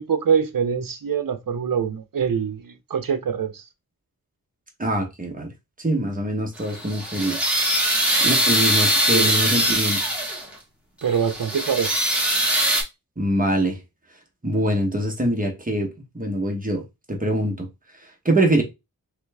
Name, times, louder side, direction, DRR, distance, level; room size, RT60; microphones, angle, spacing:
voice 1, 0.0-3.7 9.1-9.6 11.0-11.9, right 7 dB, 60° right, 0.8 m, -24 dB
voice 2, 4.8-5.5 5.8-7.4 8.2-10.0 13.2-13.8 14.4-16.8 17.1-17.7 18.2-18.6, right 1 dB, 20° right, 1.0 m, -24 dB
sound 1, 6.6-10.5 11.0-12.8, right 1 dB, 5° right, 1.3 m, -22 dB
3.1 x 3.0 x 3.3 m
wide cardioid pair, 105°, 37 cm